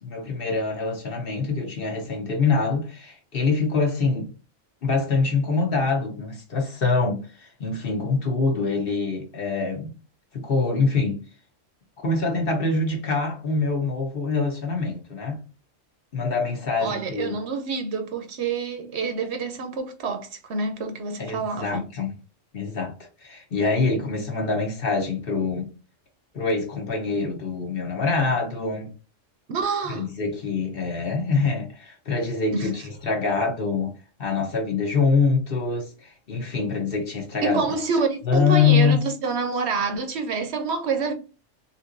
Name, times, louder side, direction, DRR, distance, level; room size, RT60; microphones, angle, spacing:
voice 1, 0.0-4.3 4.8-9.9 10.3-11.2 12.0-15.4 16.1-17.4 21.2-22.1 22.5-22.9 23.2-25.7 26.3-28.9 29.9-33.9 34.2-37.6 38.3-39.0, left 4 dB, 50° left, 1.0 m, -24 dB
voice 2, 16.8-21.8 29.5-30.1 32.5-32.7 37.4-41.1, right 4 dB, 65° right, 0.8 m, -27 dB
3.6 x 2.9 x 2.5 m
omnidirectional pair, 1.3 m